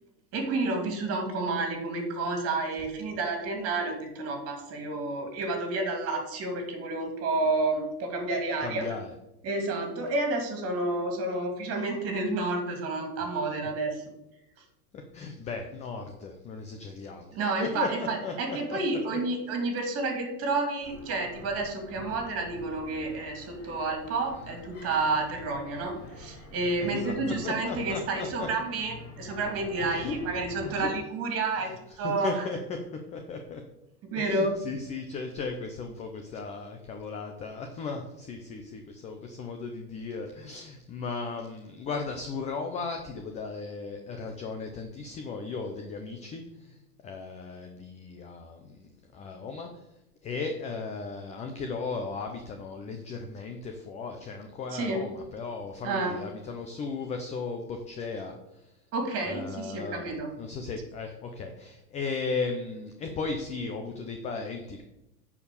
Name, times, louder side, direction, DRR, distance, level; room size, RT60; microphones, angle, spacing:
voice 1, 0.3-8.8 9.4-14.0 17.3-31.7 32.0-32.4 34.0-34.5 54.7-55.0 55.8-56.2 58.9-60.3, right 3 dB, 30° right, 3 dB, 2.6 m, -30 dB
voice 2, 8.6-9.1 15.1-18.8 19.1-19.2 26.9-28.5 29.8-30.2 30.6-30.9 31.6-31.7 32.0-32.6 32.9-33.6 34.2-49.9 50.2-58.8 59.3-64.8, left 4 dB, 15° left, 5 dB, 0.5 m, -36 dB
sound 1, 20.8-31.0, left 2 dB, 30° left, 3.0 m, -46 dB
9.9 x 4.9 x 6.8 m, 0.89 s
supercardioid pair, 150°, 45 cm